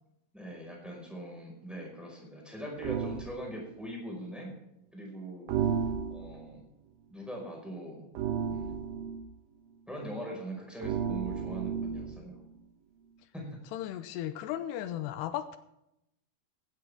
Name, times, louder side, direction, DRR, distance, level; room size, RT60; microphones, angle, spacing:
voice 1, 0.3-4.5 4.9-5.5 6.1-6.6 7.1-8.1 8.5-8.8 9.9-12.4 13.3-13.6, right 1 dB, ahead, -1 dB, 4.8 m, -41 dB
sound 1, 2.8-3.3 5.5-6.4 8.2-9.3 10.8-12.2, right 7 dB, 70° right, 2.7 m, -32 dB
voice 2, 13.7-15.6, left 12 dB, 85° left, 11 dB, 2.8 m, -35 dB
16.5 x 12.5 x 3.6 m, 0.84 s
omnidirectional pair, 4.8 m